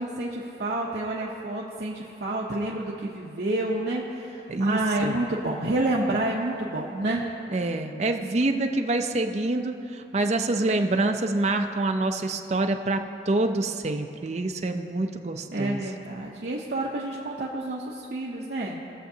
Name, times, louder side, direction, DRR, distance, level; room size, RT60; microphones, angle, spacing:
voice 1, 0.0-7.2 15.5-18.8, right 1 dB, 65° right, -4 dB, 0.8 m, -29 dB
voice 2, 4.5-5.1 7.5-15.8, right 2 dB, 40° right, 5 dB, 0.5 m, -26 dB
19.0 x 6.8 x 2.8 m, 2.8 s
head